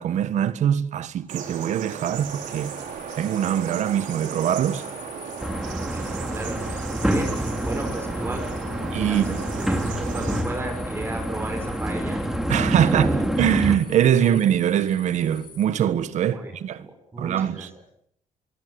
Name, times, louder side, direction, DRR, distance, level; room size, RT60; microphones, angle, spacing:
voice 1, 0.0-2.7 3.2-4.8 8.9-9.4 12.5-16.9 17.2-17.7, right 10 dB, 65° right, 1.5 m, -23 dB
sound 1, 1.3-10.4, right 7 dB, 80° right, 5.4 m, -36 dB
sound 2, 2.1-15.7, left 6 dB, 35° left, 4.2 m, -47 dB
sound 3, 5.4-13.8, equal, 5° right, 2.9 m, -27 dB
voice 2, 5.9-12.2 12.7-13.2 14.2-14.3 16.3-17.7, right 2 dB, 20° right, 6.4 m, -35 dB
25.5 x 22.5 x 7.9 m
cardioid pair, 135°, 13 cm